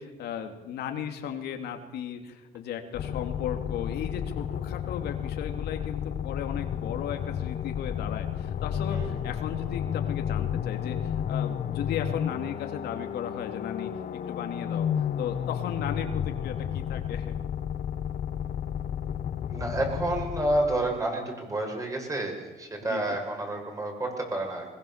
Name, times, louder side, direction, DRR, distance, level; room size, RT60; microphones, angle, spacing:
voice 1, 0.0-13.9 14.3-17.4 22.9-23.2, left 8 dB, 75° left, 5 dB, 2.5 m, -36 dB
sound 1, 2.9-21.0, left 9 dB, 50° left, 1.0 m, -32 dB
voice 2, 19.5-24.7, right 1 dB, 20° right, 2 dB, 6.6 m, -29 dB
21.5 x 21.0 x 7.3 m, 1.2 s
cardioid pair, 110°, 17 cm